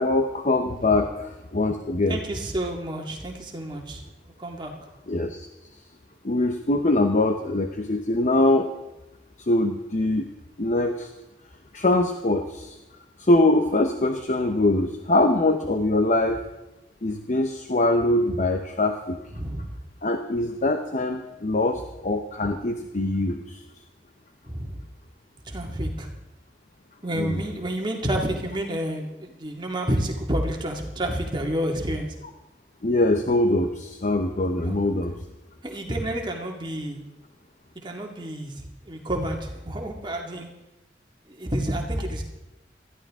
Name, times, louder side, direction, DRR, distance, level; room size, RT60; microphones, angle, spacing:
voice 1, 0.0-2.2 5.1-5.5 6.2-8.7 9.5-10.3 10.6-11.1 11.7-12.7 13.3-16.4 17.0-19.2 20.0-23.6 27.2-27.3 32.8-35.1, left 2 dB, 40° left, 5 dB, 0.9 m, -23 dB
voice 2, 2.1-4.7 19.3-19.7 24.4-24.8 25.5-26.1 27.0-32.2 34.6-34.8 35.6-37.0 37.8-40.5 41.3-42.2, right 1 dB, 25° right, 1 dB, 2.1 m, -29 dB
20.0 x 14.0 x 3.7 m, 0.97 s
head